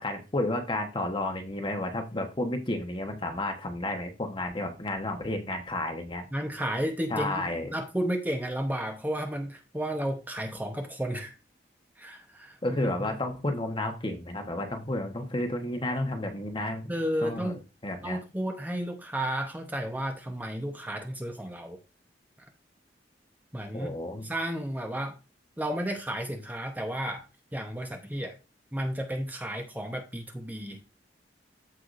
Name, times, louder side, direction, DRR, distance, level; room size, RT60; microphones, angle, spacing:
voice 1, 0.0-6.2 7.1-7.7 12.6-17.0 17.2-18.2 23.7-24.2, left 1 dB, 30° left, 1.2 m, -32 dB
voice 2, 6.3-11.3 12.0-12.9 16.9-17.6 18.0-21.8 23.5-24.0 24.2-25.2 25.6-27.3 27.5-28.4 28.7-30.9, right 1 dB, 10° right, 0.9 m, -32 dB
14.5 x 4.8 x 2.6 m
head